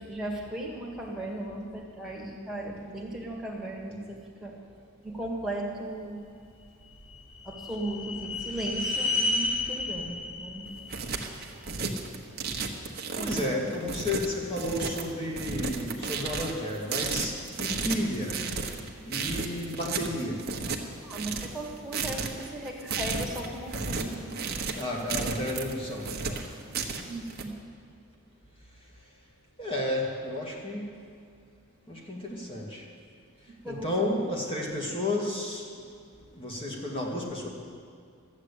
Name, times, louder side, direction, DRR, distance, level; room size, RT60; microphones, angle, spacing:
voice 1, 0.0-4.6 5.0-6.2 7.4-10.7 13.1-13.7 21.0-24.4 27.1-27.5 33.6-34.2, right 1 dB, ahead, -3 dB, 2.0 m, -37 dB
sound 1, 6.6-11.8, left 2 dB, 85° left, 3.6 m, -32 dB
sound 2, 10.7-27.4, right 4 dB, 45° right, 1.1 m, -34 dB
voice 2, 12.7-18.4 19.0-20.4 24.7-26.4 29.6-30.9 31.9-32.8 33.6-35.7 36.3-37.5, left 1 dB, 25° left, -1 dB, 2.1 m, -32 dB
12.5 x 8.6 x 8.4 m, 2.3 s
head